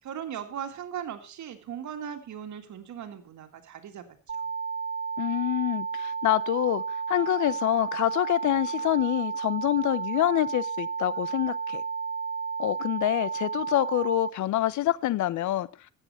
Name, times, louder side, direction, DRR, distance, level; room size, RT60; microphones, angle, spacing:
voice 1, 0.0-4.1 4.3-4.5, right 9 dB, 70° right, 2.0 m, -38 dB
sound 1, 4.3-14.3, right 6 dB, 40° right, 0.9 m, -32 dB
voice 2, 5.2-11.8 12.6-15.7, left 14 dB, 75° left, 0.7 m, -26 dB
13.0 x 8.2 x 5.6 m
cardioid pair, 90°, 30 cm